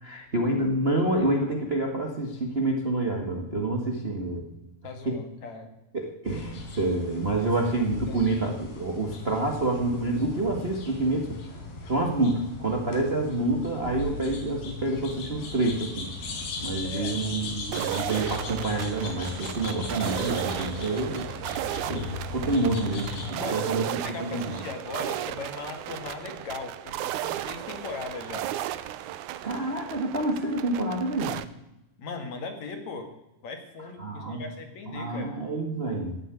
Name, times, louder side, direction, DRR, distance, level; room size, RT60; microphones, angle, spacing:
voice 1, 0.0-4.5 5.0-5.2 5.9-11.4 11.8-16.1 16.6-21.3 21.9-23.9 24.2-24.4 29.4-31.3 34.0-34.4 34.9-36.2, right 2 dB, 55° right, 2 dB, 0.6 m, -28 dB
voice 2, 4.8-5.7 7.3-7.5 8.1-8.4 16.8-17.2 23.4-28.5 32.0-33.1 33.4-35.3, left 4 dB, 55° left, 6 dB, 2.7 m, -38 dB
sound 1, 6.3-23.3, left 3 dB, 80° left, 5.1 m, -38 dB
sound 2, 17.7-31.4, right 12 dB, 85° right, 1.8 m, -34 dB
16.5 x 7.9 x 9.8 m, 0.90 s
omnidirectional pair, 4.5 m